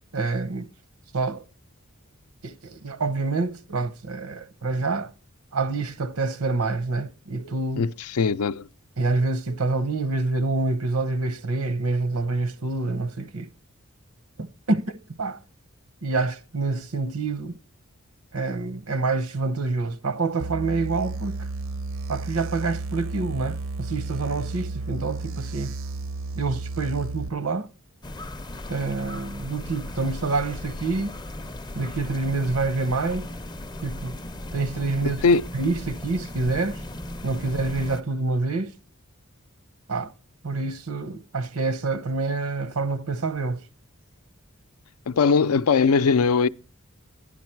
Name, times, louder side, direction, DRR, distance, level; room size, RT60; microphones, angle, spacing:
voice 1, 0.1-0.7 1.1-1.4 2.4-5.1 5.5-7.9 9.0-13.5 14.4-15.4 16.0-17.6 18.3-21.5 22.1-25.8 26.3-27.7 28.7-31.2 31.7-33.3 33.8-34.2 34.5-35.2 35.5-36.8 37.2-38.7 39.9-40.1 40.4-43.6, right 3 dB, 90° right, 1.0 m, -27 dB
voice 2, 7.8-8.7 35.2-35.4 45.1-46.5, left 5 dB, 85° left, 0.5 m, -20 dB
sound 1, 20.4-27.3, right 3 dB, 65° right, 0.6 m, -33 dB
sound 2, 28.0-38.0, left 1 dB, 20° left, 0.5 m, -37 dB
11.5 x 10.5 x 4.5 m
head